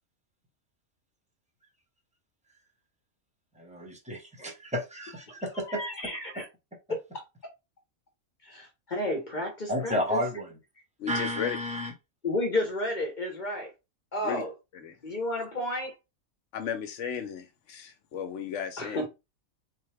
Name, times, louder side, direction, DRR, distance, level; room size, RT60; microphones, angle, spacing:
voice 1, 3.6-5.8 6.4-6.5 9.7-10.6 11.1-11.9, equal, 5° right, 0.6 m, -32 dB
voice 2, 5.7-6.4 8.4-10.2 12.2-13.7 14.1-14.5 15.0-15.9 18.8-19.1, left 1 dB, 40° left, 0.9 m, -31 dB
voice 3, 11.0-11.6 14.2-14.4 14.7-15.0 16.5-19.1, left 7 dB, 65° left, 1.0 m, -35 dB
4.2 x 2.2 x 3.3 m
omnidirectional pair, 1.4 m